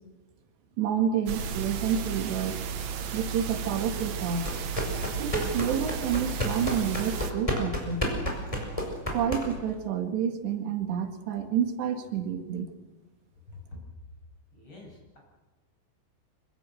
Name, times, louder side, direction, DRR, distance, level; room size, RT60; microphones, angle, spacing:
voice 1, 0.8-2.6 3.1-4.5 5.2-8.1 9.1-12.7, right 8 dB, 85° right, 6 dB, 4.1 m, -29 dB
sound 1, 1.3-7.3, right 7 dB, 60° right, 2.1 m, -34 dB
sound 2, 4.4-9.8, equal, 10° left, 5.0 m, -31 dB
voice 2, 13.5-13.8 14.5-15.2, left 2 dB, 30° left, -1 dB, 8.9 m, -46 dB
25.5 x 24.0 x 6.5 m, 1.1 s
omnidirectional pair, 4.8 m